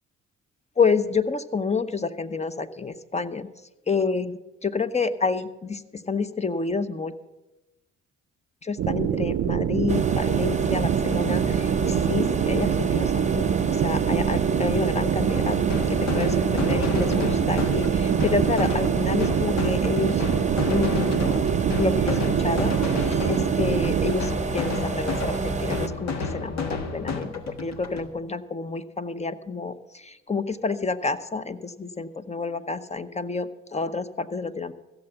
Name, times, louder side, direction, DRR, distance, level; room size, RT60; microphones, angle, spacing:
voice 1, 0.8-3.5 3.9-7.1 8.6-15.6 15.9-20.2 20.7-21.4 21.8-34.7, left 4 dB, 25° left, 13 dB, 0.8 m, -29 dB
sound 1, 8.8-24.1, right 10 dB, 55° right, 0.6 m, -25 dB
sound 2, 9.9-25.9, right 3 dB, 25° right, 0.8 m, -28 dB
sound 3, 15.3-28.1, left 4 dB, 65° left, 1.5 m, -32 dB
15.5 x 7.1 x 6.9 m, 1.0 s
supercardioid pair, 60°, 29 cm